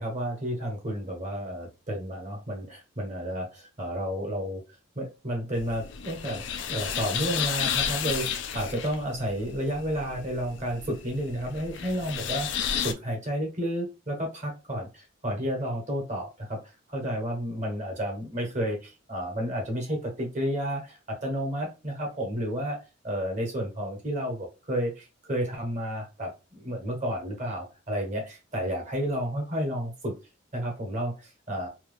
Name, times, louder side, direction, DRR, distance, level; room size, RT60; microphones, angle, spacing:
voice 1, 0.0-4.6 4.9-16.6 16.9-22.8 23.0-30.1 30.5-31.7, equal, 35° right, 1 dB, 1.1 m, -31 dB
sound 1, 5.5-12.9, left 8 dB, 60° left, 0.4 m, -32 dB
2.9 x 2.3 x 3.4 m, 0.28 s
head